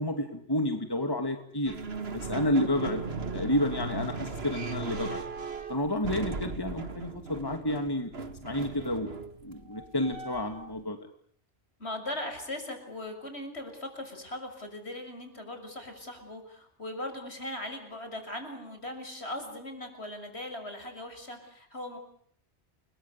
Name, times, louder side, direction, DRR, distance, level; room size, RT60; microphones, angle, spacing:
voice 1, 0.0-1.7 2.1-3.0 3.3-5.2 5.7-8.1 8.4-9.1 9.4-11.0, left 1 dB, 20° left, 6 dB, 2.5 m, -30 dB
sound 1, 1.7-10.7, right 4 dB, 65° right, 2.1 m, -37 dB
voice 2, 11.8-22.0, left 1 dB, 65° left, 6 dB, 6.9 m, -39 dB
30.0 x 22.0 x 8.4 m, 0.62 s
omnidirectional pair, 1.2 m